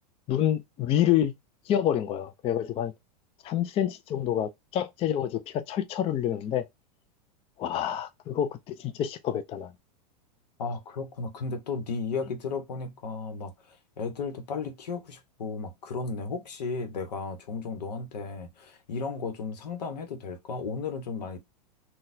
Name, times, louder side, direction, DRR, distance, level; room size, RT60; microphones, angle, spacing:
voice 1, 0.3-1.3 1.7-2.9 3.4-6.6 7.6-9.7, left 10 dB, 30° left, 0.4 m, -27 dB
voice 2, 10.6-21.4, left 4 dB, 85° left, 1.0 m, -34 dB
4.0 x 2.3 x 2.6 m
hypercardioid pair, 115°, 20 cm